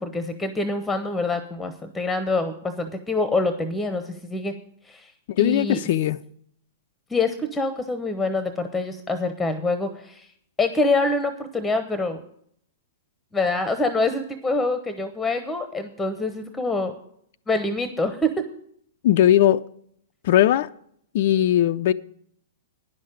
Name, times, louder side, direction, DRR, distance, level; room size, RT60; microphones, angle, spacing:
voice 1, 0.0-4.5 4.8-5.1 5.4-5.8 7.1-10.3 10.6-12.2 13.3-16.9 17.5-18.3, left 2 dB, 10° left, 0.8 m, -25 dB
voice 2, 5.4-6.2 19.0-19.6 20.2-20.7 21.1-21.9, left 12 dB, 50° left, 0.4 m, -18 dB
10.0 x 6.4 x 8.7 m
figure-of-eight pair, 105°, 0 cm